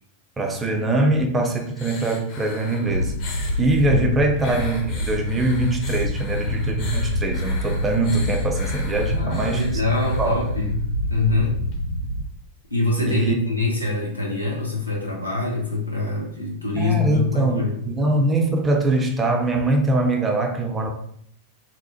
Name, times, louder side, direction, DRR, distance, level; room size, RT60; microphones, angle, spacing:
voice 1, 0.4-3.1 3.6-9.6 10.2-10.4 13.1-13.3 16.8-20.9, right 2 dB, 15° right, 3 dB, 0.4 m, -22 dB
sound 1, 1.5-3.7 4.4-10.7 11.7-11.8, left 3 dB, 40° left, 0.5 m, -40 dB
sound 2, 2.8-12.2, left 1 dB, 90° right, 0.3 m, -26 dB
voice 2, 9.1-10.8 11.1-11.6 12.7-17.7, left 3 dB, 85° left, -3 dB, 0.7 m, -24 dB
2.8 x 2.0 x 2.7 m, 0.66 s
figure-of-eight pair, 90°, 0 cm